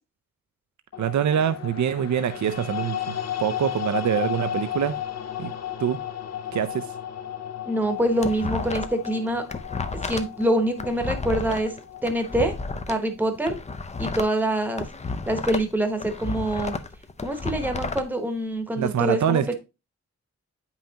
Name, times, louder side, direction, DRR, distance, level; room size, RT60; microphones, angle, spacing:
sound 1, 0.9-13.1, left 10 dB, 60° left, 0.7 m, -34 dB
voice 1, 1.0-3.0 3.4-4.9 5.4-5.5 5.8-6.0 6.5-6.8 18.8-19.5, right 9 dB, 75° right, 0.5 m, -24 dB
voice 2, 7.6-9.4 10.0-11.7 12.0-12.5 12.9-13.6 14.0-14.9 15.3-16.8 17.2-19.5, right 1 dB, 5° right, 0.9 m, -25 dB
sound 2, 7.8-9.1 9.4-12.9 13.4-15.7 16.0-18.0, left 4 dB, 25° left, 0.5 m, -32 dB
8.9 x 5.6 x 2.8 m
wide cardioid pair, 175°, 29 cm